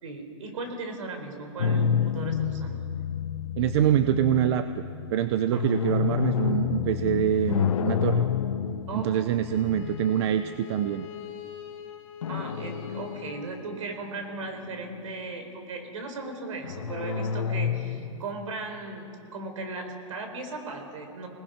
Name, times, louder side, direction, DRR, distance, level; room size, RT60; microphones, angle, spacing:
voice 1, 0.0-2.8 5.5-5.7 8.9-9.2 12.3-21.3, right 3 dB, 75° right, 5 dB, 4.6 m, -37 dB
sound 1, 1.6-10.9 12.2-13.8 14.2-15.3 16.6-18.3, left 7 dB, 85° left, 1.2 m, -29 dB
voice 2, 3.6-4.7 5.1-8.2 8.9-11.1, right 11 dB, 55° right, 10 dB, 0.8 m, -25 dB
Bowed string instrument, 9.4-14.3, left 10 dB, 40° left, 2.0 m, -44 dB
28.0 x 19.5 x 5.9 m, 2.6 s
hypercardioid pair, 140°, 17 cm